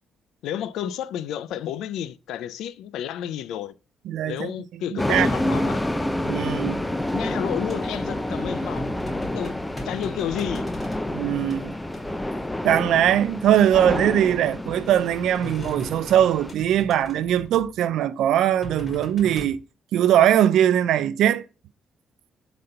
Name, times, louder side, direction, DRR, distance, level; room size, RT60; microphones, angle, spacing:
voice 1, 0.4-3.7 4.2-5.9 6.9-8.9 9.3-9.6 9.8-10.7 11.4-11.6, left 10 dB, 85° left, 0.4 m, -31 dB
voice 2, 4.1-4.6 5.1-5.6 6.2-6.8 11.1-11.7 12.6-19.6 19.9-21.4, right 11 dB, 80° right, 0.4 m, -21 dB
sound 1, 5.0-16.5, left 1 dB, 10° left, 0.6 m, -28 dB
sound 2, 7.6-8.0 8.4-11.6 11.9-12.3 13.4-14.4 14.7-17.8 18.3-19.5, left 1 dB, 25° left, 2.8 m, -40 dB
7.6 x 4.1 x 5.4 m
cardioid pair, 90°, 0 cm